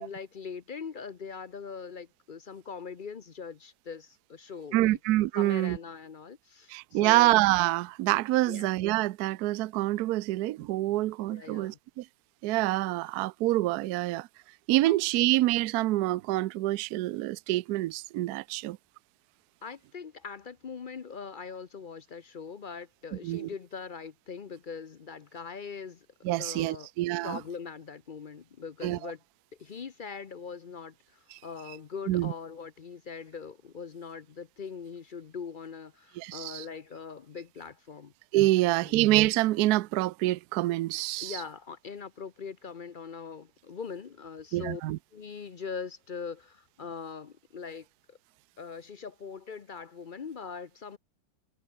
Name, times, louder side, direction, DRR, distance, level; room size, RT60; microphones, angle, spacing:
voice 1, 0.0-5.0 5.3-7.3 8.5-8.7 11.3-11.8 14.9-15.0 19.6-26.9 27.2-29.2 29.6-38.1 38.6-39.0 41.2-44.8 45.1-48.2 48.6-51.0, left 5 dB, 45° left, 0.6 m, -41 dB
voice 2, 4.7-5.8 6.7-12.1 12.4-14.3 14.7-18.8 23.2-23.5 26.2-27.4 28.8-29.1 31.3-31.4 32.1-32.3 36.2-36.6 38.3-41.4 44.5-45.0, right 17 dB, 70° right, 1.0 m, -26 dB
omnidirectional pair, 1.9 m